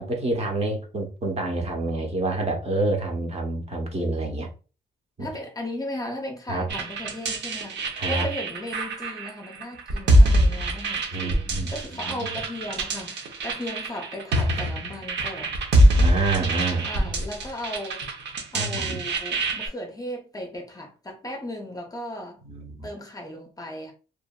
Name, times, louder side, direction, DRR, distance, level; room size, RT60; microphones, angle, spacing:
voice 1, 0.0-4.5 5.2-5.3 6.5-6.7 8.0-8.2 11.1-11.7 12.0-12.3 16.0-17.1 18.5-19.1 22.4-22.9, right 2 dB, 35° right, 0.8 m, -28 dB
voice 2, 5.2-15.5 16.8-18.1 18.5-22.4 22.8-23.9, left 1 dB, 20° left, 0.5 m, -36 dB
sound 1, 6.7-19.7, right 1 dB, 75° right, 0.7 m, -24 dB
2.8 x 2.5 x 2.2 m
wide cardioid pair, 135°, 18 cm